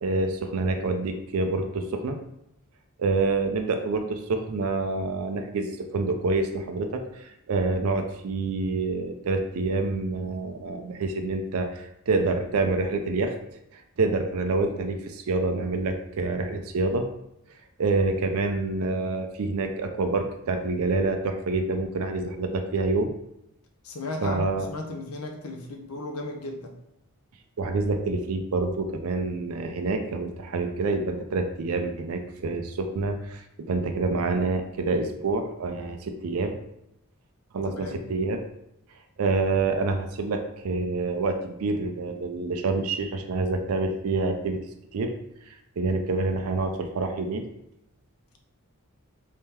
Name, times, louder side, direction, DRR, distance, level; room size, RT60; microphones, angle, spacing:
voice 1, 0.0-2.2 3.0-13.3 13.7-17.1 17.8-23.1 24.2-24.7 27.6-36.5 37.5-38.4 39.2-44.6 44.9-45.1 45.5-47.4, right 3 dB, 70° right, 5 dB, 0.4 m, -27 dB
voice 2, 23.8-26.7 37.6-38.0, left 2 dB, 75° left, 2 dB, 0.7 m, -35 dB
3.6 x 3.3 x 2.9 m, 0.80 s
head